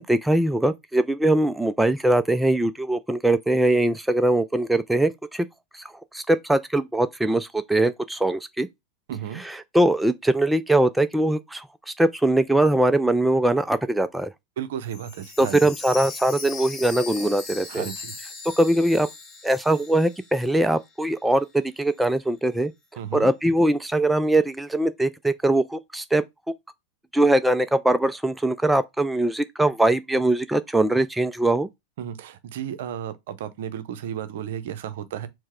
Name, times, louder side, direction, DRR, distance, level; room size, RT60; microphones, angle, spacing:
voice 1, 0.0-5.5 5.7-5.8 6.1-8.7 9.4-11.6 12.0-14.3 15.4-17.9 18.6-19.1 19.4-22.7 23.1-26.2 27.1-31.7, right 1 dB, 5° right, 0.3 m, -21 dB
voice 2, 9.1-9.4 14.6-15.6 17.7-18.2 23.0-23.3 32.0-35.3, right 9 dB, 65° right, 0.6 m, -33 dB
Chime, 14.8-20.8 21.1-21.2 21.8-21.9, left 4 dB, 30° left, 1.2 m, -39 dB
4.6 x 2.1 x 4.3 m
figure-of-eight pair, 90°, 0 cm